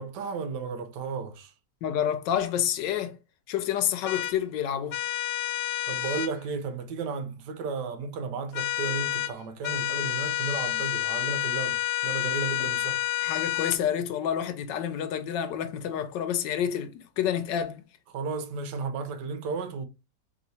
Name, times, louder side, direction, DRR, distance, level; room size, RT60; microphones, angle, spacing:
voice 1, 0.0-1.5 5.9-13.0 18.1-19.8, right 5 dB, 75° right, 1.3 m, -34 dB
voice 2, 1.8-3.2 3.5-5.0 13.2-17.8, left 9 dB, 85° left, 1.3 m, -28 dB
sound 1, 4.1-4.3 4.9-6.3 8.5-9.3 9.6-13.8, left 14 dB, 65° left, 1.2 m, -29 dB
3.1 x 3.0 x 4.0 m
omnidirectional pair, 1.9 m